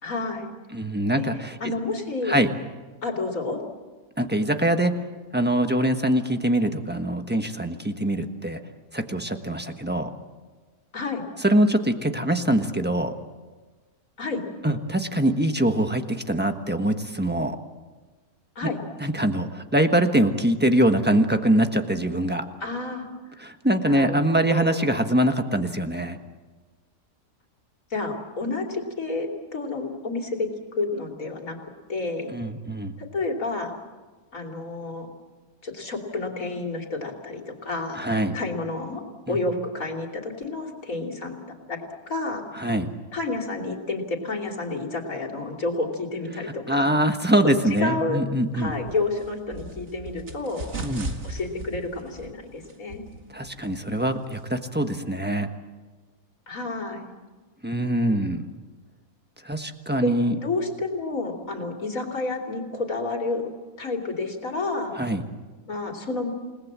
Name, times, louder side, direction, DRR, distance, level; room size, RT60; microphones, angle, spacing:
voice 1, 0.0-0.5 1.2-1.3 1.6-2.4 3.0-3.6 10.9-11.2 14.2-14.4 18.5-18.8 22.6-23.1 23.8-24.9 27.9-31.6 31.9-32.3 33.0-33.7 34.3-35.1 35.6-38.0 38.3-39.0 39.3-41.4 41.7-41.8 42.1-42.5 43.1-46.9 47.4-47.5 47.8-48.2 48.5-50.6 51.2-53.0 56.5-57.1 60.0-60.1 60.4-63.5 63.8-64.9 65.7-66.3, left 3 dB, 65° left, 1 dB, 3.4 m, -30 dB
voice 2, 0.7-1.5 2.3-2.5 4.2-5.0 5.3-8.6 8.9-10.1 11.4-13.1 14.6-17.6 19.0-22.4 23.4-26.2 32.3-32.9 37.9-38.4 39.3-39.4 42.5-42.9 46.7-48.7 50.8-51.1 53.3-55.5 57.6-58.4 59.4-60.4 65.0-65.2, right 1 dB, 5° right, 6 dB, 1.2 m, -23 dB
sound 1, 48.6-54.8, right 2 dB, 50° right, 2.2 m, -39 dB
29.0 x 19.0 x 7.5 m, 1.3 s
omnidirectional pair, 1.6 m